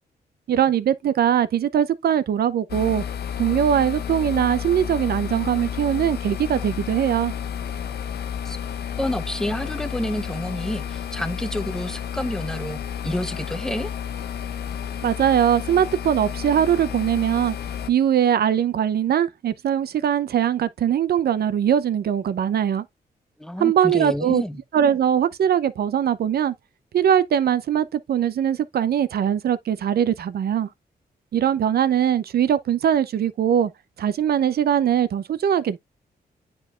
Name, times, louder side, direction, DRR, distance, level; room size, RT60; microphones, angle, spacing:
voice 1, 0.5-3.0 3.4-7.3 15.0-17.6 17.9-22.8 23.6-24.4 24.7-26.5 26.9-30.7 31.3-33.7 34.0-35.8, right 9 dB, 70° right, 0.6 m, -21 dB
sound 1, 2.7-17.9, left 8 dB, 80° left, 0.7 m, -31 dB
voice 2, 9.0-12.8 13.0-13.9 23.4-24.6, left 1 dB, 5° left, 0.8 m, -29 dB
9.4 x 4.6 x 2.4 m
cardioid pair, 90°, 17 cm